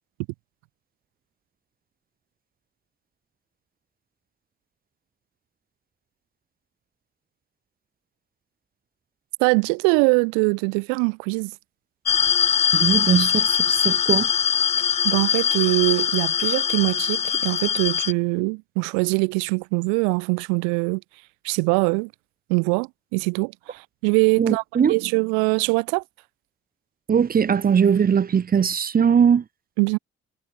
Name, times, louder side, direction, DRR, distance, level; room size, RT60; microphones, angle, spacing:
voice 1, 9.4-11.5 15.0-21.0 21.4-22.1 22.5-24.6 24.9-26.0 29.8-30.0, right 40 dB or more, 65° right, 0.7 m, -22 dB
sound 1, 12.1-18.1, left 8 dB, 20° left, 0.4 m, -22 dB
voice 2, 12.7-14.3 24.4-24.9 27.1-29.4, right 7 dB, 30° right, 0.7 m, -20 dB
figure-of-eight pair, 45°, 32 cm